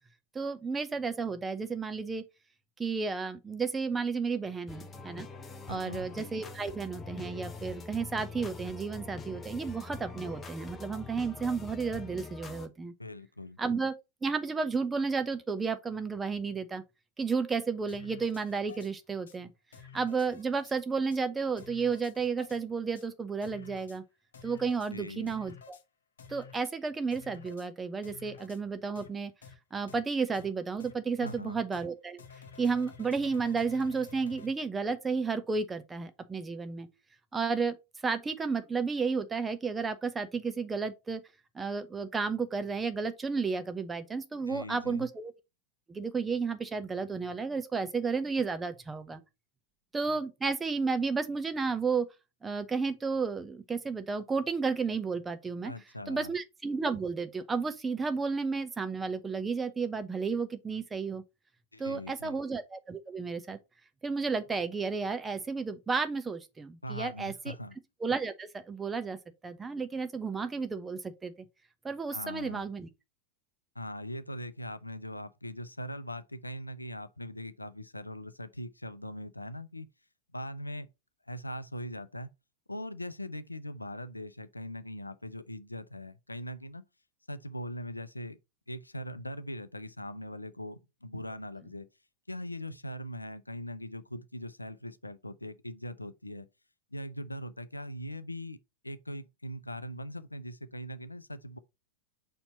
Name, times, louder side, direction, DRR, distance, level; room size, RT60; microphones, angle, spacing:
voice 1, 0.3-2.2 2.8-5.3 5.7-12.9 13.6-13.9 14.2-16.8 17.2-19.5 19.9-24.0 24.4-25.8 26.3-29.3 29.7-32.2 32.6-36.9 37.3-37.8 38.0-41.2 41.5-45.3 45.9-49.2 49.9-52.1 52.4-55.7 56.1-61.2 61.8-63.6 64.0-67.6 68.0-69.2 69.4-71.5 71.8-72.9, right 4 dB, 15° right, 0.7 m, -32 dB
sound 1, 4.7-12.7, left 3 dB, 15° left, 0.9 m, -44 dB
voice 2, 5.7-6.1 13.0-13.6 24.9-25.3 31.2-31.6 44.5-45.1 55.6-56.3 61.7-62.4 66.8-67.7 72.1-72.6 73.8-79.9 80.3-80.9 81.3-82.3 82.7-86.8 87.3-88.4 88.7-91.9 92.3-96.4 96.9-98.6 98.8-101.6, left 1 dB, 85° left, 0.5 m, -41 dB
sound 2, 17.9-18.9 19.3-19.4 19.7-20.7 21.1-21.2 21.6-22.6 22.9-23.1 23.4-24.0 24.3-24.9 25.3-25.8 26.2-26.7 27.1-27.7 28.0-28.6 28.9-29.1 29.4-29.5 29.9-30.0 30.3-30.5 30.8-30.9 31.3-31.4 31.7-31.9 32.2-34.5, left 6 dB, 65° left, 1.1 m, -51 dB
5.3 x 4.4 x 4.0 m
figure-of-eight pair, 90°, 0 cm